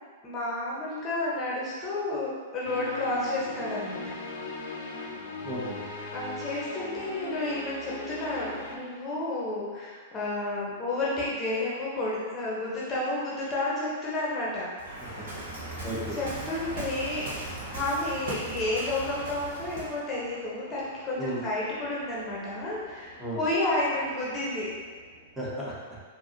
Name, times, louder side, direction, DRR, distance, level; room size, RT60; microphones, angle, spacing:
voice 1, 0.2-4.1 6.1-14.7 15.7-17.2 17.7-24.7, left 2 dB, 20° left, -6 dB, 0.9 m, -31 dB
sound 1, 2.6-8.8, left 2 dB, 55° left, 0.6 m, -38 dB
voice 2, 5.4-5.8 15.0-15.2 15.8-16.2 21.2-21.4 23.2-23.4 25.4-26.0, right 1 dB, 5° right, -8 dB, 1.1 m, -34 dB
Waves surf, 14.8-20.0, right 2 dB, 65° right, 0.9 m, -39 dB
sound 2, 14.8-25.3, equal, 85° right, 1.3 m, -48 dB
4.5 x 2.6 x 2.7 m, 1.5 s
figure-of-eight pair, 100°, 0 cm